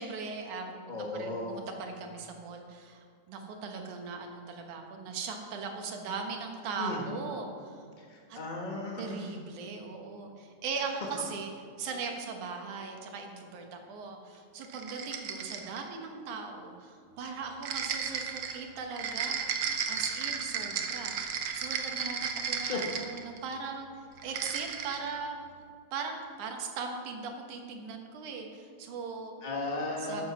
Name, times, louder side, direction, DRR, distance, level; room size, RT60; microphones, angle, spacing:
voice 1, 0.0-7.8 8.3-8.4 9.0-11.5 11.8-19.4 19.9-21.2 21.5-25.3 25.9-29.3 30.1-30.3, right 4 dB, 80° right, 3 dB, 2.8 m, -39 dB
voice 2, 0.9-1.6 6.8-7.0 8.0-9.4 10.7-11.1 22.6-22.8 29.4-30.3, left 2 dB, 50° left, -1 dB, 0.5 m, -36 dB
sound 1, 14.6-15.9 17.6-23.5 24.2-25.1, right 7 dB, 65° right, 1.3 m, -34 dB
14.0 x 7.7 x 6.2 m, 2.2 s
omnidirectional pair, 3.4 m